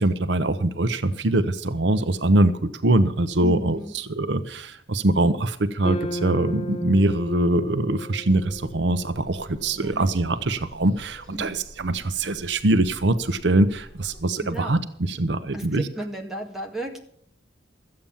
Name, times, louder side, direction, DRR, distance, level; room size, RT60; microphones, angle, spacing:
voice 1, 0.0-15.9, right 2 dB, 65° right, 12 dB, 0.8 m, -23 dB
voice 2, 3.4-3.9 9.7-10.1 11.3-11.6 14.4-14.8 15.5-17.0, right 1 dB, ahead, 1 dB, 1.9 m, -34 dB
sound 1, 5.8-10.2, equal, 25° left, 1.1 m, -34 dB
sound 2, 8.3-14.2, equal, 20° right, 7.4 m, -48 dB
13.5 x 8.7 x 7.1 m, 0.69 s
head